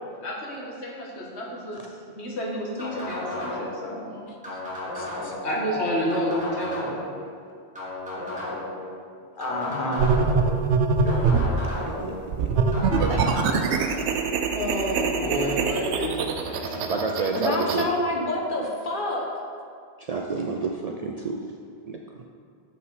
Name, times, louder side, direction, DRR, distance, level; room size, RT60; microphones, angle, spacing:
voice 1, 0.2-4.3 5.4-7.0 13.1-14.1 14.5-16.9, equal, 80° left, -3 dB, 1.7 m, -30 dB
sound 1, 2.8-3.8 4.4-5.5 6.1-7.1 7.7-8.8 9.4-10.5 11.1-12.1 12.7-13.6, left 2 dB, 5° right, 2.1 m, -34 dB
voice 2, 4.9-5.3 9.4-10.1 17.3-19.3, left 1 dB, 50° left, 0 dB, 1.2 m, -28 dB
sound 2, 10.0-11.6 12.3-17.8, right 4 dB, 90° right, 0.9 m, -24 dB
voice 3, 11.0-11.4 11.8-12.5 16.7-17.9 20.0-21.4 21.9-22.0, right 3 dB, 50° right, 1 dB, 0.4 m, -30 dB
7.4 x 5.7 x 4.8 m, 2.2 s
omnidirectional pair, 1.1 m